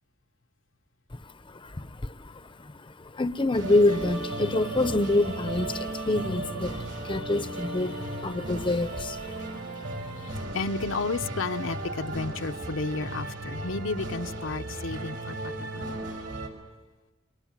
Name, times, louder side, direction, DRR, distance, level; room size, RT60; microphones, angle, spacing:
voice 1, 1.1-10.6, left 2 dB, 25° left, 0.7 m, -28 dB
sound 1, 3.5-16.5, right 2 dB, 70° right, 5.4 m, -36 dB
voice 2, 10.2-16.3, left 3 dB, 75° left, 0.9 m, -33 dB
29.0 x 23.5 x 7.4 m
head